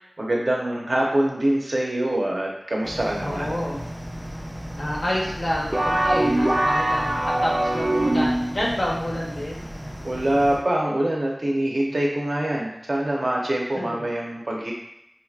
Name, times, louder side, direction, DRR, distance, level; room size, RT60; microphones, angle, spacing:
voice 1, 0.2-3.5 10.0-14.7, right 1 dB, 65° right, -1 dB, 0.8 m, -24 dB
sound 1, 2.8-10.6, equal, 5° right, 1.0 m, -36 dB
voice 2, 3.2-3.8 4.8-9.6 13.7-14.1, left 1 dB, 65° left, -3 dB, 1.0 m, -29 dB
sound 2, 5.7-8.6, right 1 dB, 35° right, 0.5 m, -22 dB
5.1 x 2.8 x 2.4 m, 0.82 s
wide cardioid pair, 45°, 0 cm